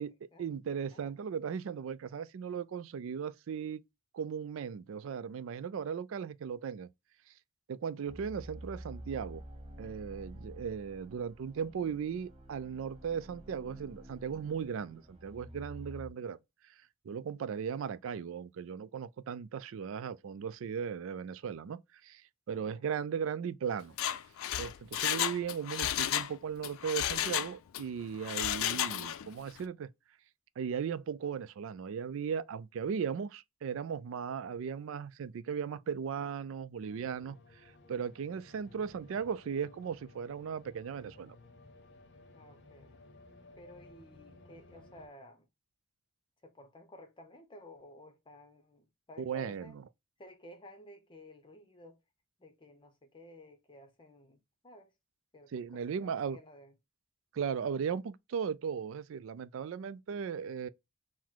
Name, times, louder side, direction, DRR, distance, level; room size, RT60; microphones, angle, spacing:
voice 1, 0.4-3.8 4.1-6.9 7.7-9.4 9.8-16.4 17.0-22.2 22.5-23.9 24.6-29.9 30.6-37.4 37.9-41.4 49.2-49.7 55.5-56.4 57.3-60.7, right 7 dB, 70° right, 0.3 m, -37 dB
sound 1, 8.1-16.1, right 1 dB, 30° right, 0.8 m, -49 dB
voice 2, 22.5-22.9 42.3-43.0 43.6-45.5 46.4-49.8 50.2-52.0 52.4-54.9 55.3-56.7 57.7-58.0, left 1 dB, 25° left, 0.7 m, -54 dB
Mechanisms, 23.8-26.3 26.6-27.8 28.2-29.3 29.6-29.7, left 11 dB, 80° left, 0.4 m, -33 dB
sound 2, 36.8-45.1, left 2 dB, 60° left, 0.7 m, -57 dB
3.9 x 2.1 x 4.5 m
head